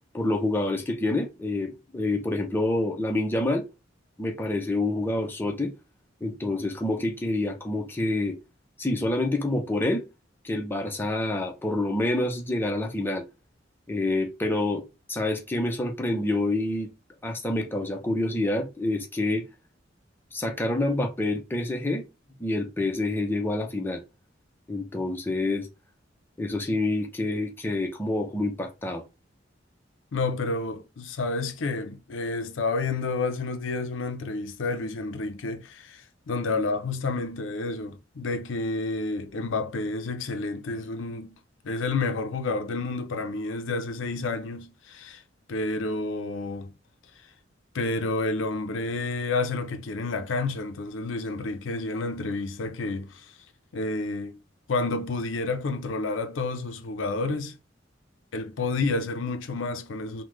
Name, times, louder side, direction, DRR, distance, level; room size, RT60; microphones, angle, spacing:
voice 1, 0.1-3.6 4.2-5.7 6.2-8.4 8.8-10.0 10.4-13.2 13.9-14.8 15.1-16.9 17.2-19.5 20.3-22.1 22.4-24.0 24.7-25.7 26.4-29.0, left 2 dB, 10° left, 0.6 m, -27 dB
voice 2, 30.1-41.3 41.6-45.2 45.5-46.7 47.7-53.4 53.7-54.4 54.7-57.6 58.3-60.2, left 3 dB, 85° left, 0.5 m, -30 dB
3.7 x 2.1 x 3.1 m
head